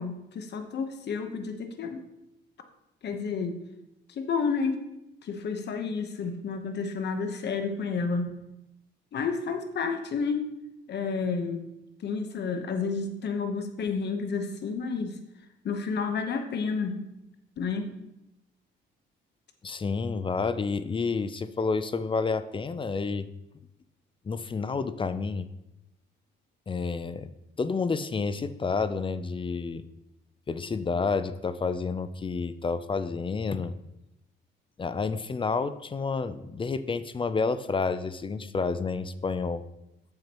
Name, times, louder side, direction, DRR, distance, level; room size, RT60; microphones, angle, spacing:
voice 1, 0.0-2.0 3.0-3.6 4.1-4.8 5.2-8.3 9.1-10.4 10.9-11.6 12.0-15.2 15.6-17.1 17.6-17.9, left 5 dB, 60° left, 6 dB, 1.0 m, -30 dB
voice 2, 19.6-23.3 24.2-25.5 26.7-27.3 27.6-29.8 30.5-33.7 34.8-39.6, left 4 dB, 25° left, 13 dB, 0.4 m, -29 dB
8.8 x 7.1 x 3.0 m, 0.89 s
cardioid pair, 90°, 20 cm